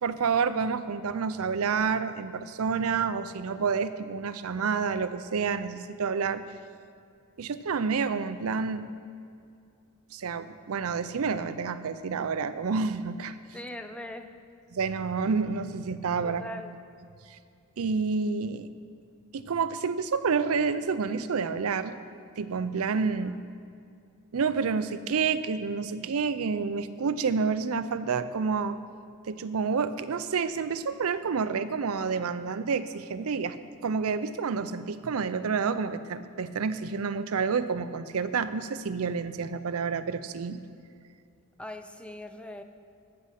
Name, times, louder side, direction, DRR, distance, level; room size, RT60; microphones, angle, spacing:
voice 1, 0.0-6.4 7.4-8.9 10.1-13.3 14.7-16.4 17.3-17.4 17.8-18.7 19.3-22.0 22.4-23.4 24.3-28.8 29.3-33.6 33.8-40.6, right 5 dB, 70° right, 12 dB, 0.5 m, -29 dB
voice 2, 13.5-14.3 16.2-16.7 23.2-23.4 41.6-42.6, left 1 dB, 5° left, 7 dB, 0.5 m, -40 dB
14.5 x 6.4 x 5.7 m, 2.4 s
head